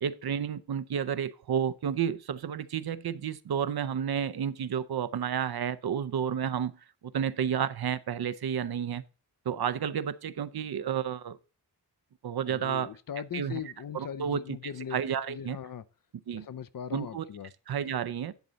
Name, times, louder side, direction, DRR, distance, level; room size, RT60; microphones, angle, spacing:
voice 1, 0.0-6.7 7.0-9.0 9.5-11.4 12.2-12.9 13.3-13.6 13.9-15.6 16.3-16.5 16.9-17.2 17.7-18.3, right 8 dB, 65° right, 0.6 m, -31 dB
voice 2, 12.4-15.0 15.3-15.8 16.3-17.5, left 8 dB, 55° left, 0.6 m, -39 dB
10.5 x 4.0 x 6.7 m
wide cardioid pair, 105°, 40 cm